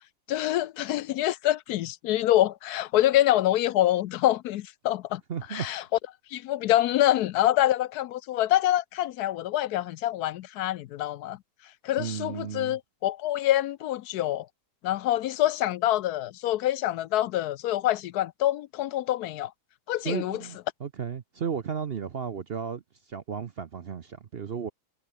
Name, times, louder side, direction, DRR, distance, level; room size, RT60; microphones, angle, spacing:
voice 1, 0.3-5.2 5.5-5.8 6.3-11.4 11.8-14.5 14.8-19.5 19.9-20.4, left 13 dB, 75° left, 1.1 m, -26 dB
voice 2, 5.3-5.7 12.0-12.8 20.0-22.8 23.1-24.7, right 7 dB, 50° right, 0.8 m, -34 dB
omnidirectional pair, 1.7 m